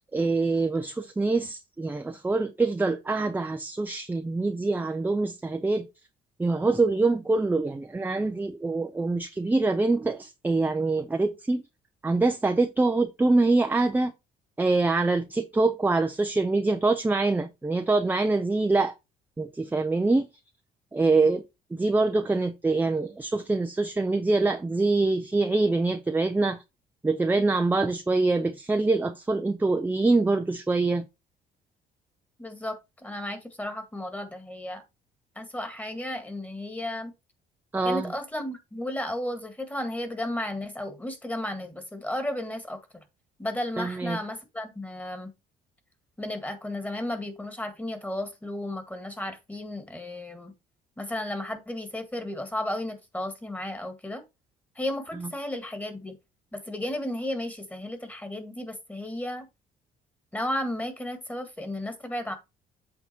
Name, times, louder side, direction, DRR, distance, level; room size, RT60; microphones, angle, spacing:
voice 1, 0.0-5.9 6.4-11.6 12.0-14.1 14.6-18.9 19.4-20.3 20.9-21.4 21.7-26.6 27.0-31.1 37.7-38.1 43.8-44.2, right 3 dB, 10° right, 0.6 m, -25 dB
voice 2, 32.4-34.8 35.4-37.1 37.9-43.0 43.4-45.3 46.2-50.5 51.0-54.2 54.8-56.2 56.5-59.5 60.3-62.3, left 1 dB, 10° left, 1.8 m, -34 dB
8.2 x 3.8 x 4.4 m
cardioid pair, 110°, 17 cm